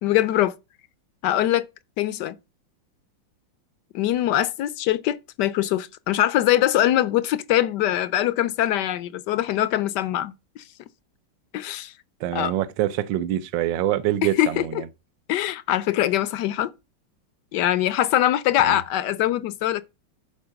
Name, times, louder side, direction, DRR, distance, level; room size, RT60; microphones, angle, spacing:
voice 1, 0.0-0.5 1.2-1.7 2.0-2.4 3.9-10.3 11.5-11.9 12.3-12.5 14.2-14.8 15.3-16.7 17.5-19.8, left 13 dB, 70° left, 1.1 m, -22 dB
voice 2, 12.2-14.9 18.6-18.8, right 12 dB, 70° right, 1.4 m, -25 dB
12.0 x 4.6 x 5.7 m
omnidirectional pair, 2.2 m